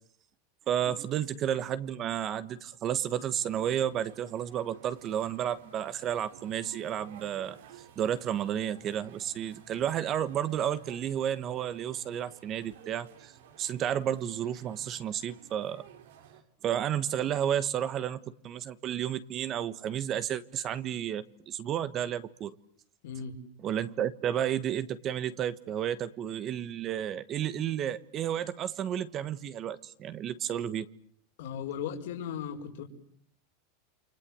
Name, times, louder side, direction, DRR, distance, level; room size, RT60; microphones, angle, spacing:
voice 1, 0.7-7.6 7.9-13.3 13.6-15.8 16.6-22.5 23.6-30.9, right 10 dB, 30° right, 14 dB, 1.3 m, -32 dB
sound 1, 3.4-16.4, right 9 dB, 85° right, 4.0 m, -54 dB
voice 2, 23.0-23.4 31.4-32.8, left 8 dB, 70° left, 2 dB, 4.9 m, -37 dB
29.0 x 25.5 x 7.8 m, 0.64 s
supercardioid pair, 150°, 0 cm